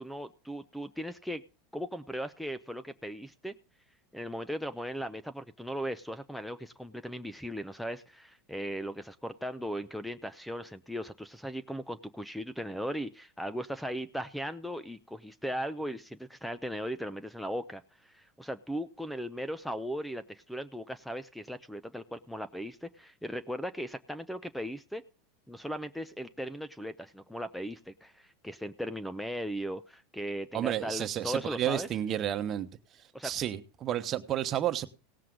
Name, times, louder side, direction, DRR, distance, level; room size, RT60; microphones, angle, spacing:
voice 1, 0.0-1.4 1.7-3.5 4.1-25.0 25.5-31.9 33.1-33.3, equal, ahead, 0.6 m, -38 dB
voice 2, 30.5-32.7 33.2-34.9, right 11 dB, 40° right, 1.1 m, -31 dB
18.0 x 7.5 x 3.8 m
hypercardioid pair, 100°, 0 cm